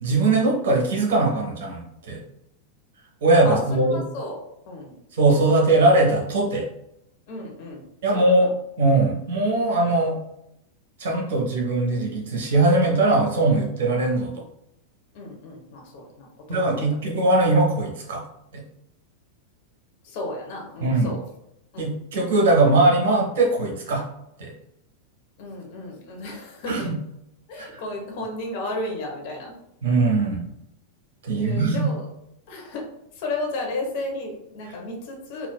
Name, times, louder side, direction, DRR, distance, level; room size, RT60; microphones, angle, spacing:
voice 1, 0.0-2.2 3.2-4.0 5.1-6.7 8.0-8.5 8.8-10.2 11.0-14.3 16.5-18.2 18.5-18.6 20.8-21.1 21.8-24.1 24.4-24.5 26.7-26.9 27.6-27.8 29.8-30.4 31.2-31.9, right 2 dB, 60° right, 0 dB, 0.9 m, -20 dB
voice 2, 3.4-5.0 5.3-5.5 7.3-7.8 8.1-8.5 14.3-14.4 15.1-17.0 20.0-21.2 21.7-21.9 25.4-27.0 27.5-29.5 31.4-32.0 32.5-32.9 33.1-35.5, left 2 dB, 50° left, 0 dB, 0.9 m, -33 dB
3.9 x 2.3 x 2.2 m, 0.80 s
figure-of-eight pair, 90°, 0 cm